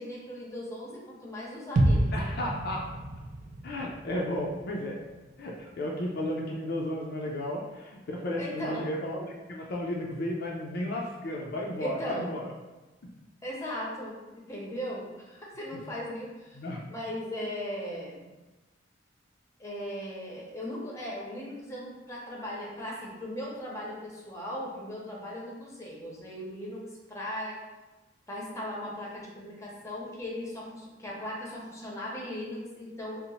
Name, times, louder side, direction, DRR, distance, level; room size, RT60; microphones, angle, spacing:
voice 1, 0.0-2.3 8.4-8.9 11.8-12.3 13.4-16.6 16.9-18.3 19.6-26.8 27.1-27.6 28.3-33.2, equal, 15° left, -4 dB, 0.7 m, -38 dB
sound 1, 1.8-5.7 6.0-6.1, right 1 dB, 45° right, 0.3 m, -30 dB
voice 2, 2.1-2.9 3.6-5.0 5.4-12.5 16.5-16.8, left 1 dB, 60° left, -1 dB, 0.4 m, -33 dB
2.8 x 2.0 x 4.0 m, 1.1 s
head